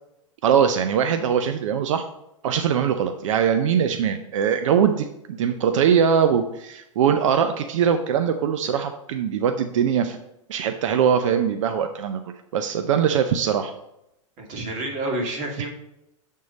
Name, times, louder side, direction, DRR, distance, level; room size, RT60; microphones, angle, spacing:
voice 1, 0.4-2.0 2.4-10.2 10.5-12.2 12.5-13.7, right 8 dB, 75° right, 7 dB, 0.5 m, -21 dB
voice 2, 14.4-15.7, right 2 dB, 45° right, -1 dB, 2.3 m, -29 dB
7.7 x 3.7 x 4.0 m, 0.84 s
hypercardioid pair, 115°, 17 cm